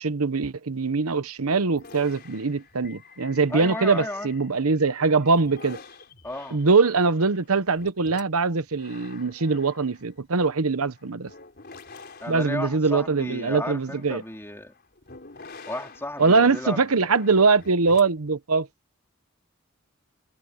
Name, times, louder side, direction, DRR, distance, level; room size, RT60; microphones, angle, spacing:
voice 1, 0.0-5.8 6.5-11.3 12.3-14.2 16.2-18.7, right 4 dB, 85° right, 1.0 m, -22 dB
sound 1, 1.8-4.8 5.2-18.3, left 4 dB, 45° left, 4.3 m, -48 dB
voice 2, 3.5-4.3 6.2-6.6 12.2-14.7 15.7-17.1, left 1 dB, 10° left, 3.5 m, -34 dB
head